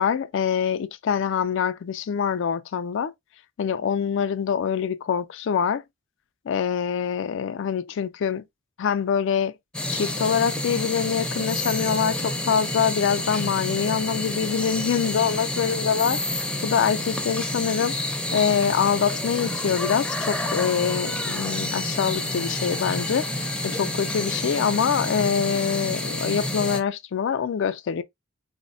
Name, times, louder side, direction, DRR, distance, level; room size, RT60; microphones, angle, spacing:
voice 1, 0.0-3.1 3.6-5.8 6.5-8.4 8.8-9.5 9.9-18.0 18.3-28.0, left 7 dB, 60° left, 0.3 m, -25 dB
sound 1, 9.7-26.8, left 1 dB, 5° left, 0.5 m, -29 dB
3.9 x 2.1 x 2.6 m
head